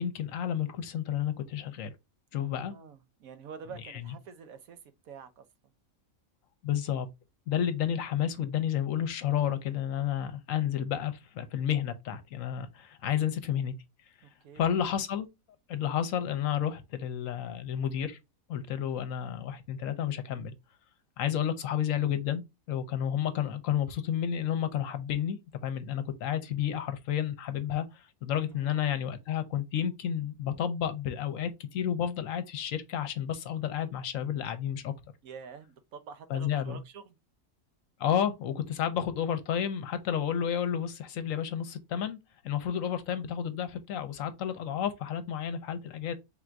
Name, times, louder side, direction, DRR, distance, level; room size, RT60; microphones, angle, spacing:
voice 1, 0.0-1.9 2.3-2.7 3.9-4.1 6.6-7.1 7.5-13.7 14.6-15.3 15.7-18.2 18.5-20.5 21.2-22.4 22.7-25.4 25.6-34.9 36.3-36.8 38.0-42.2 42.4-46.1, left 9 dB, 70° left, 1.0 m, -31 dB
voice 2, 2.4-4.8 5.0-5.4 14.2-14.8 28.5-28.9 35.2-37.2 43.1-43.2, right 6 dB, 75° right, 1.1 m, -47 dB
3.5 x 2.5 x 4.4 m
omnidirectional pair, 1.5 m